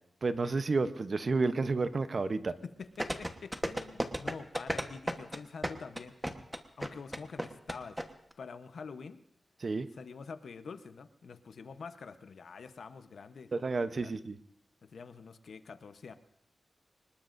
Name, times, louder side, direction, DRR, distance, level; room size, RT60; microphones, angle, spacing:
voice 1, 0.2-2.5 9.6-9.9 13.5-14.4, right 3 dB, 50° right, 11 dB, 0.8 m, -31 dB
voice 2, 2.6-6.3 6.8-8.0 8.4-9.2 10.0-13.5 14.0-14.1 14.9-16.1, left 5 dB, 80° left, 9 dB, 0.9 m, -46 dB
sound 1, 3.0-8.0 8.3-8.4, equal, 5° right, 1.2 m, -33 dB
25.0 x 20.5 x 2.6 m, 0.73 s
wide cardioid pair, 100°, 0 cm